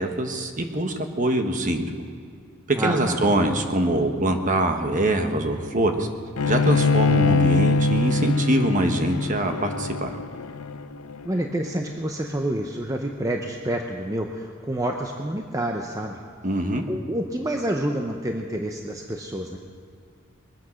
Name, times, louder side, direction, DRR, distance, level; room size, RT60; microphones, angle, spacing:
voice 1, 0.0-1.9 2.7-6.1 6.5-10.2 16.4-16.8, right 1 dB, 35° right, 5 dB, 1.3 m, -23 dB
voice 2, 2.7-3.2 11.2-16.2 16.9-19.6, right 1 dB, 15° right, 2 dB, 0.7 m, -28 dB
Bowed string instrument, 6.4-11.7, left 3 dB, 90° left, 0.6 m, -23 dB
22.0 x 9.1 x 6.4 m, 2.2 s
head